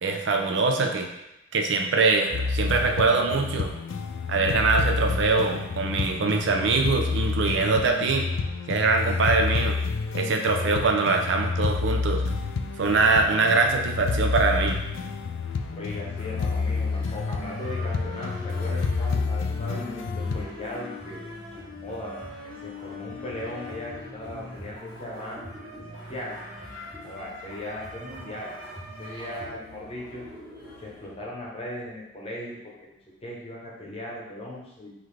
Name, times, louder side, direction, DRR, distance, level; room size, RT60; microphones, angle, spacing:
voice 1, 0.0-1.1 1.5-3.7 4.3-8.3 8.7-9.8 10.1-12.2 12.8-14.8, right 3 dB, 70° right, 3 dB, 0.5 m, -23 dB
sound 1, 2.3-20.5, left 4 dB, 90° left, 0.3 m, -29 dB
voice 2, 15.7-21.2 21.8-22.2 22.6-26.4 27.0-28.5 29.0-30.3 30.8-32.9 33.2-34.9, left 1 dB, 30° left, -3 dB, 0.9 m, -38 dB
sound 2, 15.8-31.1, left 1 dB, 20° right, 1.4 m, -42 dB
3.8 x 3.1 x 3.2 m, 0.89 s
head